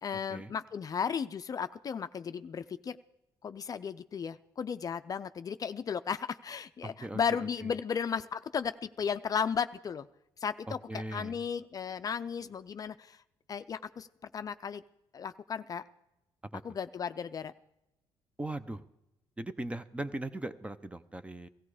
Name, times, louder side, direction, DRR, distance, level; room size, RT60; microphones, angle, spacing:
voice 1, 0.0-3.0 3.4-10.1 10.4-13.2 13.5-14.8 15.1-15.8 16.6-17.5, left 7 dB, 40° left, 12 dB, 0.5 m, -35 dB
voice 2, 6.8-7.7 10.7-11.4 16.5-16.8 18.4-18.8 19.4-21.5, right 2 dB, 15° right, 12 dB, 0.8 m, -39 dB
16.5 x 15.0 x 5.0 m, 0.90 s
cardioid pair, 85°, 9 cm